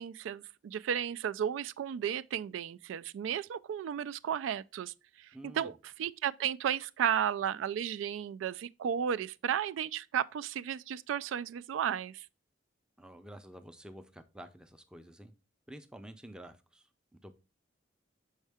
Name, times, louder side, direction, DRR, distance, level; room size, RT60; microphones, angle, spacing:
voice 1, 0.0-5.3 5.5-5.7 6.0-12.3, right 9 dB, 85° right, 0.3 m, -34 dB
voice 2, 5.3-5.8 13.0-15.3 15.7-16.9 17.2-17.3, right 1 dB, 5° right, 0.5 m, -50 dB
6.4 x 4.5 x 3.4 m
head